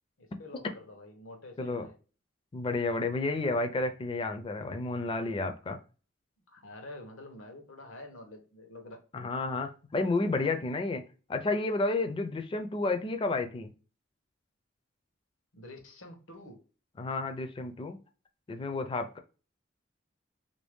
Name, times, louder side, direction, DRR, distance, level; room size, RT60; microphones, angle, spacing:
voice 1, 0.2-2.0 6.5-9.0 15.5-16.6, left 2 dB, 85° left, 5 dB, 0.9 m, -48 dB
voice 2, 2.5-5.8 9.1-11.0 11.3-13.7 17.0-18.0 18.5-19.2, left 3 dB, 25° left, 6 dB, 0.4 m, -31 dB
3.2 x 2.7 x 3.4 m, 0.35 s
head